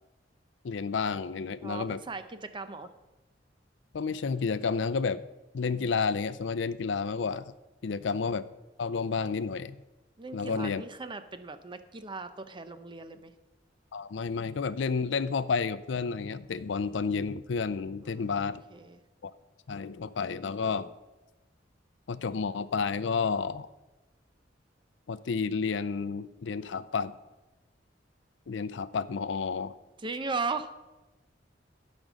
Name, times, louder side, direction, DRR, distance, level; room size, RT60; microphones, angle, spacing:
voice 1, 0.6-2.0 3.9-5.2 5.5-7.5 7.8-8.5 8.8-9.8 10.3-10.8 13.9-18.6 19.2-19.3 19.7-20.9 22.1-23.7 25.1-27.1 28.5-29.7, left 5 dB, 75° left, 16 dB, 0.5 m, -31 dB
voice 2, 1.6-2.9 7.8-8.0 10.2-13.3 18.1-19.0 30.0-30.7, right 4 dB, 25° right, 11 dB, 0.6 m, -37 dB
12.5 x 5.3 x 6.2 m, 1.1 s
head